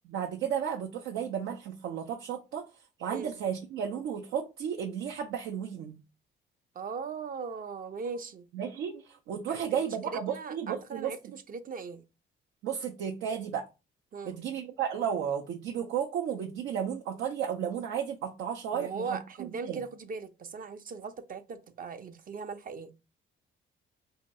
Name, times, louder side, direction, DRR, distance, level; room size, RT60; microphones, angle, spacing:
voice 1, 0.1-2.6 3.0-6.0 8.5-11.1 12.6-13.6 14.3-19.0 19.4-19.8, right 8 dB, 85° right, 0.6 m, -33 dB
voice 2, 6.7-8.5 9.5-9.6 10.0-12.0 14.1-14.4 18.7-22.9, right 5 dB, 45° right, 0.6 m, -39 dB
2.8 x 2.7 x 4.1 m
cardioid pair, 90°, 20 cm